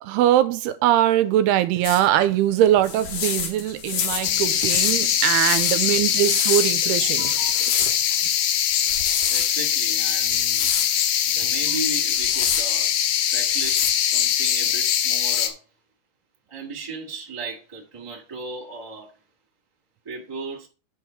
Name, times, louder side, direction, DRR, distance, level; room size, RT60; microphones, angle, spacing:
voice 1, 0.0-8.0 11.4-11.5, right 12 dB, 85° right, 2.6 m, -22 dB
sound 1, 1.8-2.1 2.8-7.0 7.5-8.1 8.8-9.5 10.3-10.9 12.0-12.7 13.4-13.9, left 7 dB, 65° left, 2.4 m, -29 dB
sound 2, 4.2-15.5, left 10 dB, 85° left, 3.0 m, -22 dB
voice 2, 9.3-10.7 11.2-12.9 13.3-15.6 16.5-19.2 20.0-20.7, right 3 dB, 15° right, 1.0 m, -36 dB
9.9 x 3.7 x 5.8 m
omnidirectional pair, 4.7 m